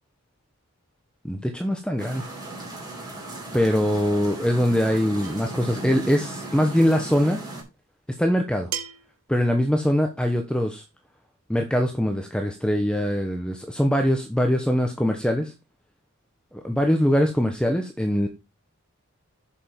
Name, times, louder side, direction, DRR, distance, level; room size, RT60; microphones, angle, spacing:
voice 1, 1.2-2.3 3.5-7.4 8.2-8.7 9.3-10.8 11.5-15.5 16.5-18.3, equal, 5° left, 4 dB, 1.0 m, -22 dB
sound 1, 2.0-7.6, right 2 dB, 15° right, 4.4 m, -36 dB
sound 2, 5.2-5.6 7.1-7.2 8.7-9.2, right 8 dB, 75° right, 1.4 m, -34 dB
7.4 x 6.8 x 5.2 m, 0.26 s
head